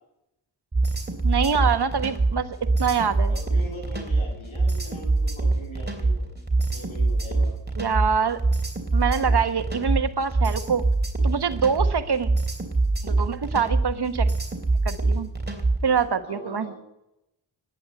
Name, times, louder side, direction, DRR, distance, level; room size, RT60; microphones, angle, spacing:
sound 1, 0.7-16.0, right 3 dB, 20° right, 3.4 m, -24 dB
voice 1, 1.2-3.4 7.8-8.4 8.9-10.9 11.2-12.3 13.0-14.3 14.8-15.3 15.8-16.7, right 6 dB, 55° right, 10 dB, 1.4 m, -25 dB
voice 2, 3.3-6.3 6.7-7.5 16.0-16.8, left 1 dB, 75° left, -1 dB, 7.2 m, -41 dB
10.5 x 9.9 x 9.4 m, 0.85 s
cardioid pair, 45°, 48 cm